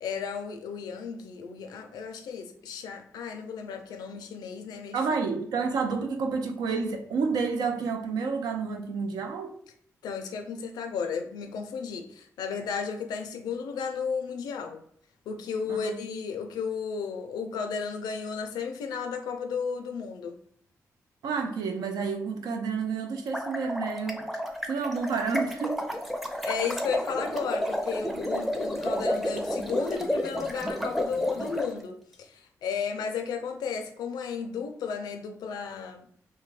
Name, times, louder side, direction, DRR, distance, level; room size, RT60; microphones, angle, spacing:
voice 1, 0.0-5.0 10.0-14.8 15.3-20.4 26.4-36.1, left 6 dB, 85° left, 0.4 m, -34 dB
voice 2, 4.9-9.5 15.7-16.0 21.2-24.3 24.7-25.8, right 5 dB, 80° right, 0.4 m, -30 dB
sound 1, 23.2-31.7, equal, ahead, 0.5 m, -31 dB
2.6 x 2.1 x 3.1 m
supercardioid pair, 50°, 7 cm